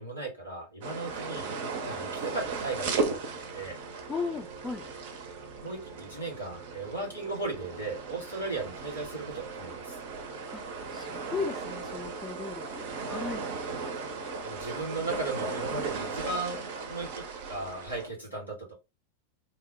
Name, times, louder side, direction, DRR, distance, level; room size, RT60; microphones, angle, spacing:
voice 1, 0.0-1.5 1.8-3.8 5.6-10.0 14.4-16.6 16.9-18.7, right 3 dB, 85° left, 1.7 m, -36 dB
sound 1, 0.8-18.1, right 4 dB, 50° right, 0.6 m, -37 dB
voice 2, 4.1-4.8 10.5-10.6 10.9-13.5, left 4 dB, 20° left, 0.4 m, -36 dB
2.8 x 2.1 x 2.9 m
figure-of-eight pair, 90°, 0 cm